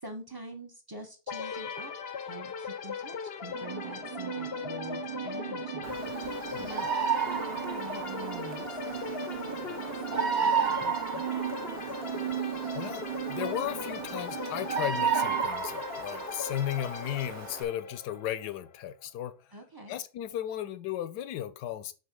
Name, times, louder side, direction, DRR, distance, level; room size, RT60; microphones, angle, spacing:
voice 1, 0.0-1.9 2.2-6.9 7.3-11.6 19.5-19.9, right 1 dB, 25° right, 0.5 m, -45 dB
sound 1, 1.3-18.9, left 7 dB, 60° left, 0.6 m, -39 dB
sound 2, 3.5-15.4, right 12 dB, 80° right, 1.3 m, -39 dB
Bird vocalization bird call bird song, 5.8-17.6, right 6 dB, 55° right, 1.6 m, -33 dB
voice 2, 12.7-19.4 19.9-21.9, left 11 dB, 75° left, 1.2 m, -35 dB
5.2 x 4.0 x 5.0 m
omnidirectional pair, 1.9 m